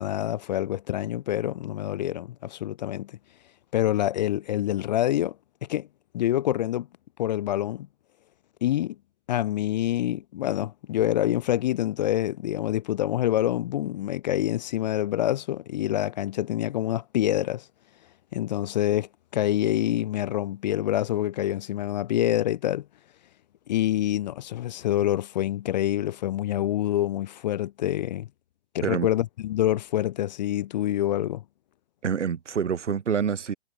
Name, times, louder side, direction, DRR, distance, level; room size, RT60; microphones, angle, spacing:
voice 1, 0.0-3.2 3.7-5.4 5.6-5.9 6.1-6.9 7.2-7.9 8.6-9.0 9.3-17.6 18.3-22.8 23.7-28.3 28.7-31.4, left 13 dB, 40° left, 0.4 m, -26 dB
voice 2, 32.0-33.5, right 7 dB, 85° right, 1.8 m, -26 dB
hypercardioid pair, 135°, 35 cm